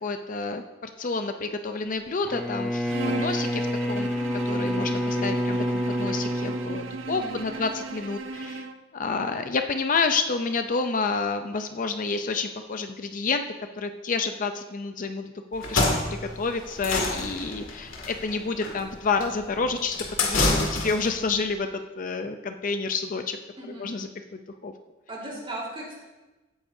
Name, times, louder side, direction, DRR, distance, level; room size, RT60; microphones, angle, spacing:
voice 1, 0.0-4.1 4.5-8.7 8.9-13.4 13.8-21.7 22.0-23.4 23.8-24.7, left 4 dB, 40° left, 7 dB, 0.5 m, -29 dB
Bowed string instrument, 2.2-7.6, equal, 5° left, 0.7 m, -28 dB
Bowed string instrument 2, 2.8-8.9, right 3 dB, 70° right, 0.6 m, -37 dB
voice 2, 7.1-7.7 23.6-23.9 25.1-26.0, right 1 dB, 30° right, -4 dB, 3.8 m, -37 dB
sound 1, 15.5-21.2, left 2 dB, 75° left, 2.2 m, -27 dB
16.5 x 9.7 x 2.7 m, 1.1 s
head